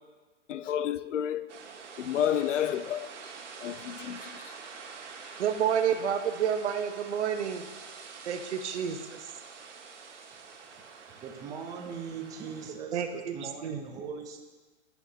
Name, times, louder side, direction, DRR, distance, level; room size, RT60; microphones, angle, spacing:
voice 1, 0.5-1.6 2.0-3.3 3.6-4.5, left 10 dB, 85° left, 0.6 m, -31 dB
sound 1, 1.5-12.7, right 5 dB, 85° right, 1.6 m, -46 dB
voice 2, 5.4-7.7 8.2-9.2 12.9-13.3 13.6-13.8, right 8 dB, 70° right, 1.0 m, -29 dB
voice 3, 11.2-14.4, right 6 dB, 10° right, 0.5 m, -40 dB
16.5 x 5.9 x 2.8 m
hypercardioid pair, 150°, 35 cm